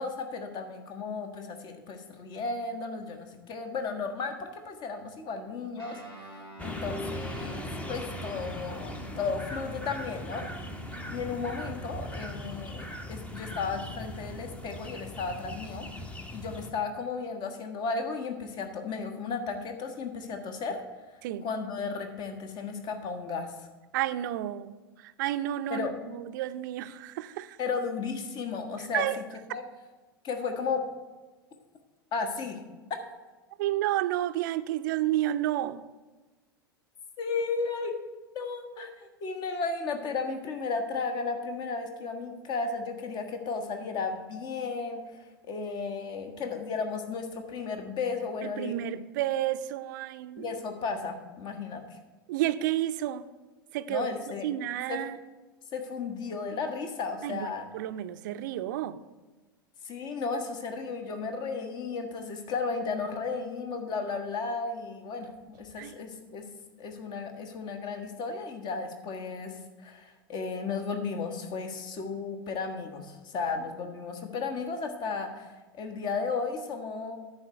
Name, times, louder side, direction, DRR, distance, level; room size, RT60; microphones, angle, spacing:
voice 1, 0.0-6.0 6.6-10.5 11.1-15.9 16.3-20.8 21.4-23.5 25.7-25.9 27.6-29.1 29.5-29.6 30.2-30.8 32.1-32.6 37.2-38.0 38.3-48.7 50.4-52.0 53.9-54.5 54.9-55.1 55.7-57.6 59.8-66.5 66.8-77.2, left 4 dB, 40° left, 5 dB, 1.4 m, -34 dB
Guitar, 5.8-15.7, right 3 dB, 85° left, 2.5 m, -48 dB
sound 1, 6.6-16.7, left 1 dB, 10° left, 0.8 m, -39 dB
voice 2, 23.9-27.6 28.8-29.2 33.6-35.9 48.4-50.6 52.3-53.3 53.7-54.1 54.4-55.2 57.2-57.4 57.7-59.0 65.8-66.0, right 13 dB, 55° right, 12 dB, 0.5 m, -31 dB
10.5 x 4.5 x 7.7 m, 1.2 s
figure-of-eight pair, 85°, 12 cm